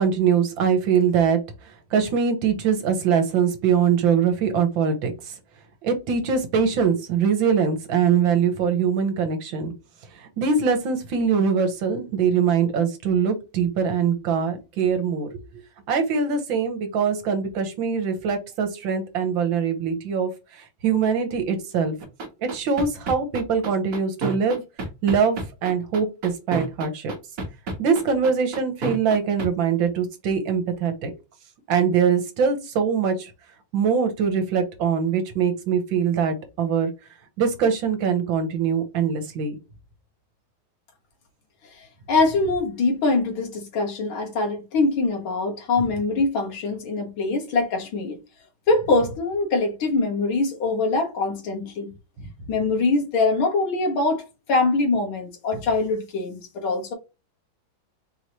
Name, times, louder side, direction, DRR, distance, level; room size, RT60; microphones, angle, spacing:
voice 1, 0.0-1.4 1.9-5.4 5.8-9.7 10.2-15.6 15.9-22.0 22.4-24.6 25.0-27.1 27.8-31.1 31.7-33.3 33.7-36.9 37.4-39.5, right 6 dB, 75° right, 1.6 m, -23 dB
sound 1, 22.0-29.5, right 3 dB, 50° right, 1.3 m, -30 dB
voice 2, 41.7-48.2 48.7-51.9 52.5-56.9, left 3 dB, 80° left, 2.1 m, -23 dB
4.7 x 3.1 x 2.8 m
omnidirectional pair, 2.2 m